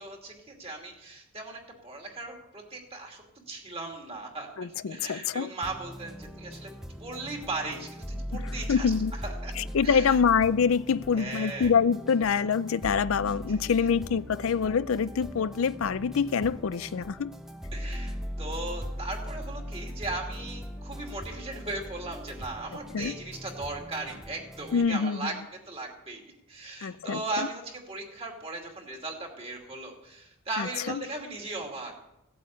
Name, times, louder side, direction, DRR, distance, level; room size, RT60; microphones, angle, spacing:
voice 1, 0.0-6.7 7.0-8.9 9.2-9.5 9.8-10.1 11.2-11.7 17.7-25.3 25.7-26.2 26.5-31.9, right 2 dB, 25° right, 2.7 m, -37 dB
voice 2, 4.6-5.5 8.3-9.2 9.6-17.3 22.9-23.1 24.7-25.3 26.8-27.2 30.6-31.0, left 6 dB, 65° left, 0.4 m, -26 dB
sound 1, 5.6-24.8, equal, ahead, 0.7 m, -39 dB
17.0 x 8.4 x 8.4 m
head